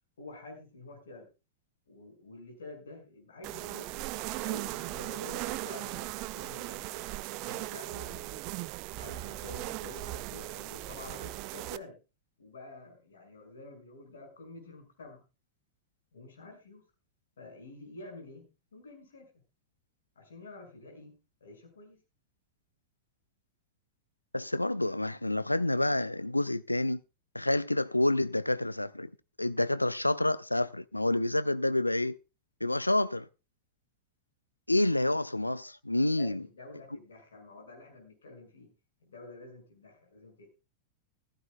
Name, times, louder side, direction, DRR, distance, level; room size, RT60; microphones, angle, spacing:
voice 1, 0.2-1.3 1.9-4.1 4.4-7.1 7.4-8.4 9.0-12.0 12.4-15.2 16.1-16.8 17.4-19.3 20.2-22.0 36.1-38.7 39.0-40.5, left 2 dB, 65° left, 5.8 m, -49 dB
sound 1, 3.4-11.8, right 18 dB, 45° right, 0.5 m, -38 dB
voice 2, 24.3-27.0 27.3-29.1 29.4-32.2 32.6-33.3 34.7-36.4, left 1 dB, 85° left, 0.5 m, -28 dB
16.0 x 15.0 x 2.3 m
figure-of-eight pair, 90°, 0 cm